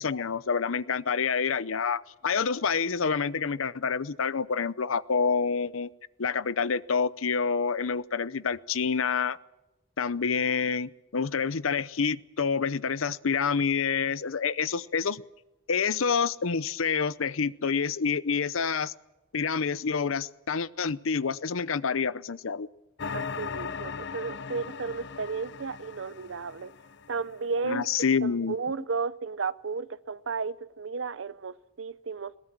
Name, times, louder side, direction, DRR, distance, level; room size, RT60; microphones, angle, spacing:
voice 1, 0.0-5.9 6.2-9.4 10.0-15.2 15.7-18.9 19.3-22.7 27.6-28.5, left 5 dB, 90° left, 0.7 m, -28 dB
sound 1, 23.0-27.5, left 5 dB, 60° left, 0.8 m, -38 dB
voice 2, 23.1-26.7 27.1-27.9 28.2-32.4, right 4 dB, 65° right, 0.7 m, -33 dB
21.5 x 18.0 x 7.5 m
head